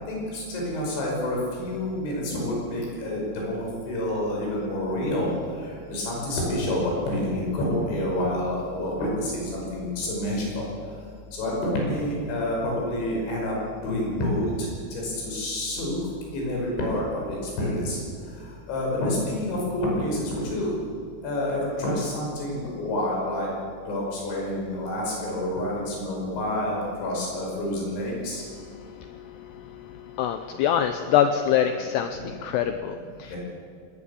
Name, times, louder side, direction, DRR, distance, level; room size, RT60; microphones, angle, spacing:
voice 1, 0.1-5.3 5.6-10.6 11.4-16.0 16.3-18.0 18.7-20.7 21.2-23.5 23.9-28.4 32.2-32.3 33.3-33.4, left 1 dB, 65° left, -2 dB, 7.8 m, -28 dB
voice 2, 28.4-33.4, left 9 dB, 90° left, 8 dB, 2.4 m, -26 dB
20.0 x 18.5 x 7.1 m, 2.4 s
omnidirectional pair, 5.7 m